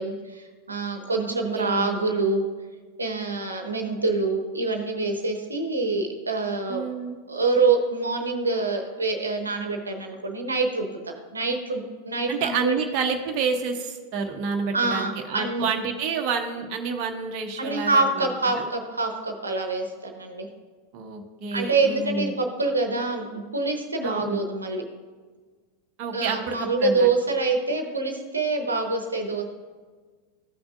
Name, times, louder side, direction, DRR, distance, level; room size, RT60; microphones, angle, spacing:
voice 1, 0.0-2.4 3.0-6.8 7.3-12.7 14.7-15.7 17.6-20.5 21.5-24.8 26.1-29.4, right 3 dB, 75° right, 4 dB, 0.9 m, -26 dB
voice 2, 1.3-1.9 6.7-7.2 12.3-18.7 20.9-22.4 24.0-24.4 26.0-27.1, right 5 dB, 40° right, 3 dB, 0.8 m, -29 dB
14.5 x 6.0 x 2.5 m, 1.4 s
figure-of-eight pair, 90°, 0 cm